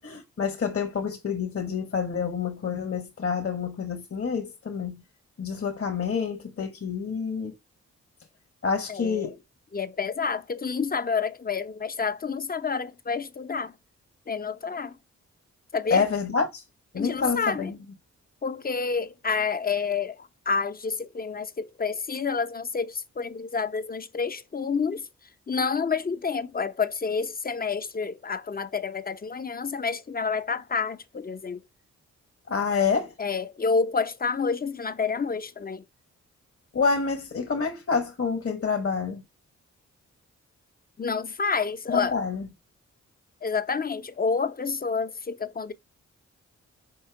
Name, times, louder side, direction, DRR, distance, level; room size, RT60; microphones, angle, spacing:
voice 1, 0.0-5.0 5.4-7.5 8.6-9.4 15.9-16.6 16.9-17.8 32.5-33.1 36.7-39.2 41.9-42.4, left 5 dB, 50° left, 1.3 m, -27 dB
voice 2, 8.9-9.3 9.7-13.7 14.3-14.9 15.7-16.1 17.0-17.7 18.4-25.0 25.5-31.6 33.2-35.8 41.0-42.2 43.4-45.7, left 5 dB, 30° left, 0.6 m, -29 dB
5.5 x 4.3 x 4.6 m
cardioid pair, 55°, 30 cm